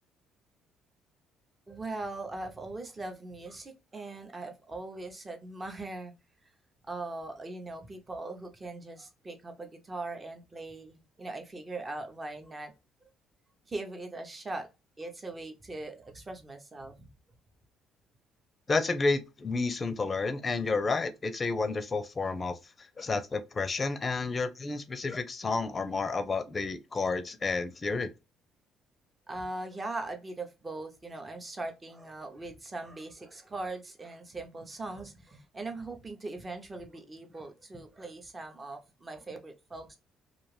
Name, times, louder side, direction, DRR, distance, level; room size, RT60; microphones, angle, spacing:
voice 1, 1.7-6.1 6.9-12.7 13.7-14.7 15.0-17.1 29.3-40.0, right 2 dB, 25° right, 0.8 m, -40 dB
voice 2, 18.7-22.6 23.0-28.1, left 3 dB, 30° left, 0.5 m, -30 dB
2.5 x 2.4 x 3.1 m
cardioid pair, 85°, 0 cm